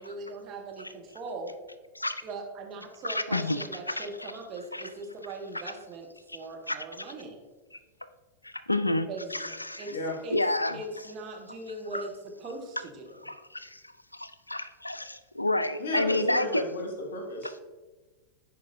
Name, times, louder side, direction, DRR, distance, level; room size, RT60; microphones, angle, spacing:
voice 1, 0.0-1.5 2.2-7.4 9.1-9.9 10.2-10.4 10.7-13.3, right 2 dB, 35° right, 2 dB, 1.1 m, -40 dB
voice 2, 3.0-4.3 4.7-4.8 5.7-5.8 6.7-6.8 8.4-9.8 10.3-10.8 11.9-12.0 13.2-13.8 14.1-16.6, left 1 dB, 85° left, 13 dB, 0.3 m, -30 dB
voice 3, 15.8-17.6, left 2 dB, 60° left, 2 dB, 1.5 m, -34 dB
10.0 x 4.5 x 2.7 m, 1.2 s
figure-of-eight pair, 90°, 0 cm